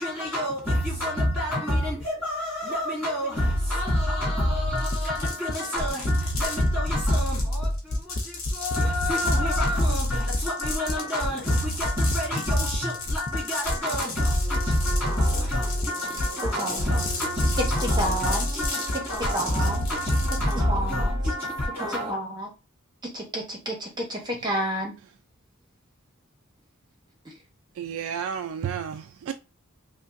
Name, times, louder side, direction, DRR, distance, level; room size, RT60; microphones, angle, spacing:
voice 1, 0.0-22.1, equal, 5° left, 2.1 m, -27 dB
sound 1, 4.6-8.7 9.0-12.1 12.4-12.8 13.1-13.4 13.7-14.0 14.3-14.6 14.9-15.2 15.5-15.9 16.2-16.5 16.8-17.1 17.4-17.7 18.0-18.3 18.6-19.5 19.8-20.1 20.4-20.7 21.0-21.7, left 1 dB, 40° left, 0.5 m, -29 dB
sound 2, 4.8-20.6, left 4 dB, 70° left, 1.3 m, -36 dB
voice 2, 16.6-17.0 17.8-18.5 19.3-19.8 20.7-21.2 21.9-22.5 23.1-24.9, right 1 dB, 20° right, 0.9 m, -30 dB
voice 3, 27.8-29.3, right 8 dB, 70° right, 0.3 m, -31 dB
5.0 x 2.2 x 2.5 m
head